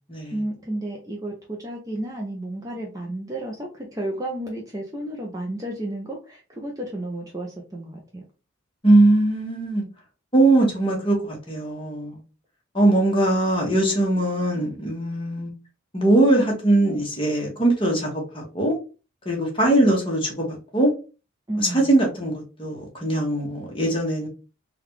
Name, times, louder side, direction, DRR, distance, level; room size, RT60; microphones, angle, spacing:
voice 1, 0.3-8.3 21.5-21.9, right 1 dB, 15° right, -1 dB, 0.5 m, -32 dB
voice 2, 8.8-9.8 10.3-12.2 12.7-15.5 15.9-18.8 19.2-20.9 21.6-24.3, right 1 dB, 25° left, -1 dB, 1.2 m, -21 dB
3.8 x 2.3 x 3.1 m, 0.32 s
head